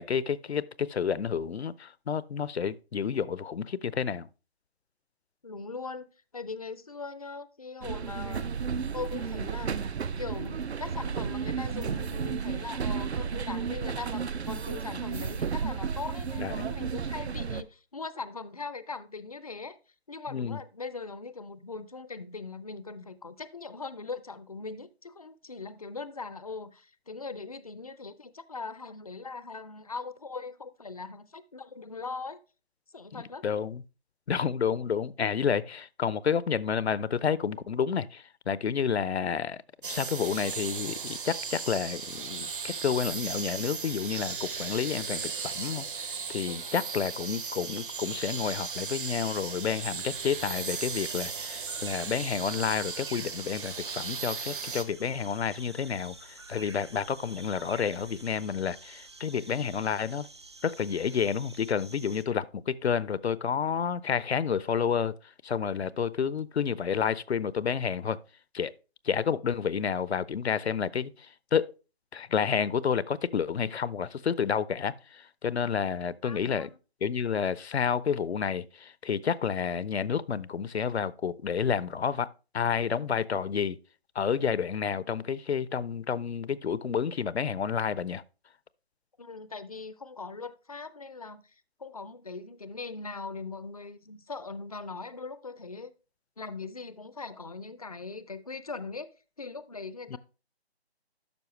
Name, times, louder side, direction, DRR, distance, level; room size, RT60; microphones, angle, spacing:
voice 1, 0.0-4.3 16.4-16.7 20.3-20.6 33.1-33.8 34.3-60.3 60.6-65.1 65.4-68.2 68.5-68.7 69.0-71.7 72.1-76.7 77.0-83.8 84.1-88.2 100.1-100.2, left 7 dB, 85° left, 0.6 m, -30 dB
voice 2, 5.4-9.8 10.2-19.8 20.1-32.4 32.9-33.4 46.5-46.7 76.2-76.8 89.2-95.9 96.4-99.1 99.4-100.2, left 4 dB, 35° left, 0.4 m, -40 dB
sound 1, 7.8-17.6, right 6 dB, 80° right, 0.7 m, -33 dB
sound 2, 39.8-54.8, right 6 dB, 55° right, 1.0 m, -36 dB
sound 3, 50.1-62.2, right 3 dB, 25° right, 0.5 m, -49 dB
12.0 x 5.4 x 3.1 m
figure-of-eight pair, 160°, 32 cm